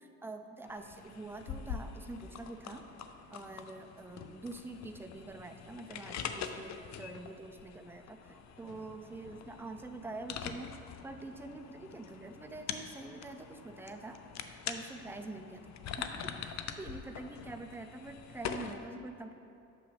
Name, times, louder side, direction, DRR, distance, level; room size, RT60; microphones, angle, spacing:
voice 1, 0.0-2.8 3.3-10.7 11.0-14.2 14.7-19.3, right 2 dB, 5° right, 6 dB, 0.4 m, -45 dB
sound 1, 0.6-18.7, left 7 dB, 65° left, 0.5 m, -44 dB
8.4 x 6.7 x 3.3 m, 2.7 s
cardioid pair, 90°, 30 cm